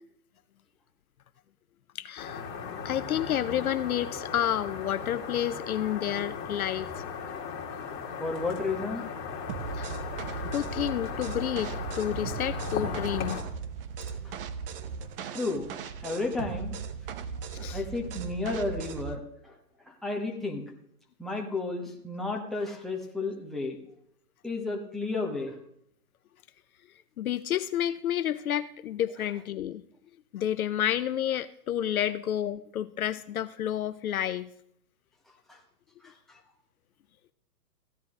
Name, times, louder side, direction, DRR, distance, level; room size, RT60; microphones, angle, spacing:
voice 1, 2.0-2.4 2.8-6.9 9.7-9.9 10.5-13.5 17.5-17.8 27.2-29.8 30.3-34.5, left 11 dB, 60° left, 12 dB, 0.6 m, -30 dB
sound 1, 2.2-13.4, left 5 dB, 25° left, 2.0 m, -37 dB
voice 2, 8.2-9.0 14.2-14.4 15.3-15.7 16.0-16.8 17.7-19.5 19.9-20.6 21.2-23.8 24.4-25.5 35.5-35.6 36.0-36.4, left 3 dB, ahead, -1 dB, 1.1 m, -32 dB
sound 2, 9.5-19.2, right 6 dB, 35° right, 0.8 m, -38 dB
15.5 x 10.5 x 3.7 m, 0.71 s
hypercardioid pair, 135°, 48 cm